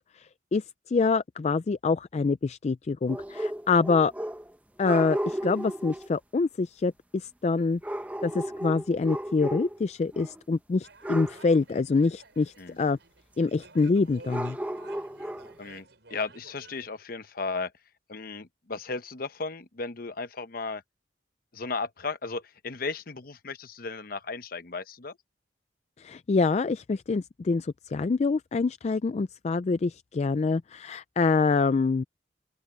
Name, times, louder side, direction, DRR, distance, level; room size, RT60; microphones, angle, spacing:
voice 1, 0.0-4.1 4.8-7.8 8.2-13.0 13.4-14.6 26.0-32.0, left 4 dB, 40° left, 0.3 m, -26 dB
sound 1, 3.1-4.5 4.8-6.1 7.8-9.9 10.1-10.4 11.0-11.5 14.3-15.6, right 1 dB, 10° right, 0.9 m, -34 dB
sound 2, 10.8-16.9, right 3 dB, 75° right, 5.4 m, -52 dB
voice 2, 15.6-17.7 18.1-20.8 21.5-25.2, left 4 dB, 55° left, 0.9 m, -35 dB
open air
head